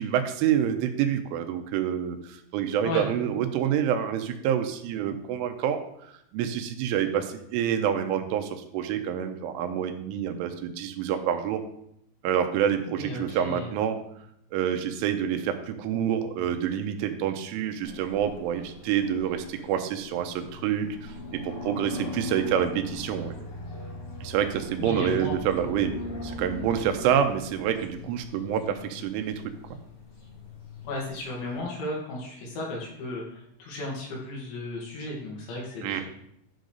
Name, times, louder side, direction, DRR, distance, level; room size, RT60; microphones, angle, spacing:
voice 1, 0.0-11.6 12.2-14.0 14.5-23.5 24.2-25.9 26.2-29.8 35.8-36.0, right 9 dB, 85° right, 7 dB, 3.3 m, -27 dB
voice 2, 12.9-13.7 24.8-25.5 30.8-36.0, left 2 dB, 70° left, -3 dB, 4.8 m, -34 dB
sound 1, 17.8-31.6, left 3 dB, 55° left, 2.5 m, -41 dB
11.5 x 4.0 x 6.5 m, 0.74 s
omnidirectional pair, 5.5 m